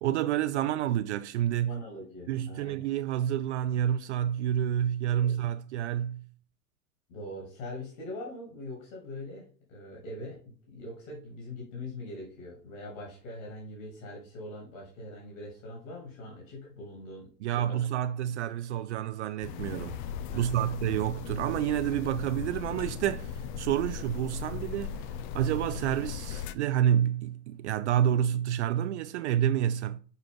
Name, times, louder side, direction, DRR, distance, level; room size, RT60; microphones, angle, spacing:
voice 1, 0.0-1.8 2.3-6.2 17.4-20.0 20.3-25.0 25.3-30.0, right 11 dB, 50° right, 0.5 m, -29 dB
voice 2, 1.6-2.9 5.1-5.4 7.1-17.8 20.3-20.8, left 1 dB, 55° left, 2.9 m, -42 dB
sound 1, 19.4-26.6, left 7 dB, 35° left, 0.4 m, -38 dB
6.6 x 4.4 x 3.6 m
figure-of-eight pair, 90°, 46 cm